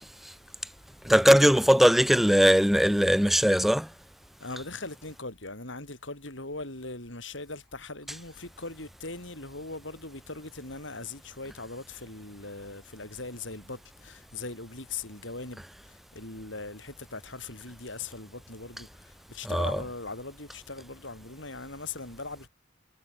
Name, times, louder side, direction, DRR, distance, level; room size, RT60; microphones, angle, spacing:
voice 1, 0.2-0.7 4.4-22.5, left 3 dB, 65° left, 6.8 m, -40 dB
voice 2, 1.0-3.9 19.5-19.7, equal, ahead, 0.4 m, -20 dB
head